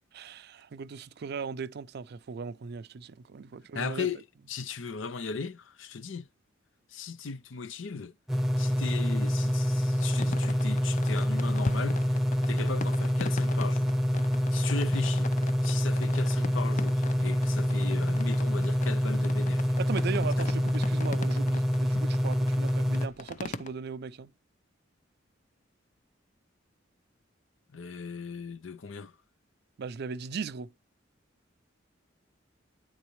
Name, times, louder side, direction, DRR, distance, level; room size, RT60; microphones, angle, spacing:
voice 1, 0.1-4.1 19.8-24.3 29.8-30.7, right 5 dB, 60° right, 0.4 m, -38 dB
voice 2, 3.7-6.3 6.9-8.1 8.6-12.0 12.5-13.9 14.5-15.3 15.6-19.7 20.4-20.5 27.7-29.1, left 5 dB, 85° left, 0.6 m, -37 dB
sound 1, 8.3-23.1, equal, ahead, 0.9 m, -26 dB
sound 2, 10.0-23.7, left 3 dB, 40° left, 0.6 m, -42 dB
9.5 x 3.9 x 3.0 m
head